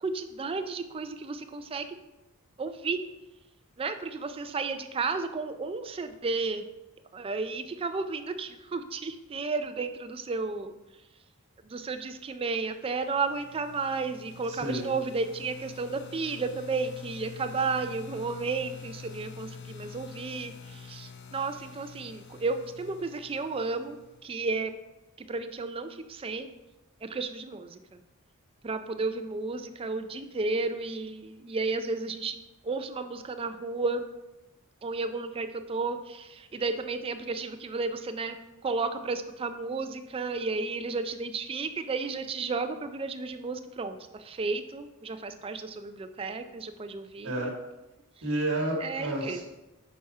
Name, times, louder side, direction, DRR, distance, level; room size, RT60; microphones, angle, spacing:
voice 1, 0.0-1.9 2.6-3.0 3.8-6.6 7.1-10.7 11.7-20.5 20.9-24.0 24.2-24.7 25.3-26.5 27.0-27.7 28.6-32.4 32.7-34.0 34.8-38.4 38.6-44.0 44.3-47.4 48.8-49.4, right 4 dB, 25° right, 8 dB, 0.3 m, -32 dB
sound 1, 12.7-24.5, left 5 dB, 50° left, 0.5 m, -47 dB
voice 2, 14.4-14.9 47.2-47.5 48.2-49.4, right 1 dB, 70° right, -2 dB, 1.3 m, -31 dB
6.1 x 4.2 x 4.7 m, 1.0 s
head